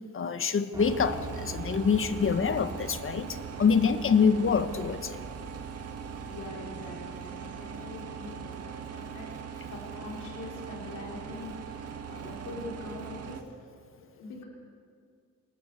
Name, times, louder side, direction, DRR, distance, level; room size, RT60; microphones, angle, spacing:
voice 1, 0.1-5.2, left 6 dB, 45° left, 10 dB, 1.6 m, -26 dB
Piano, 0.7-8.7, right 3 dB, 15° right, 4.3 m, -45 dB
sound 1, 0.8-13.4, right 7 dB, 55° right, 2.2 m, -41 dB
voice 2, 4.1-4.5 6.3-9.3 9.7-13.4 14.0-14.5, left 2 dB, 80° left, -2 dB, 5.8 m, -43 dB
25.5 x 20.0 x 6.8 m, 2.3 s
cardioid pair, 90°, 30 cm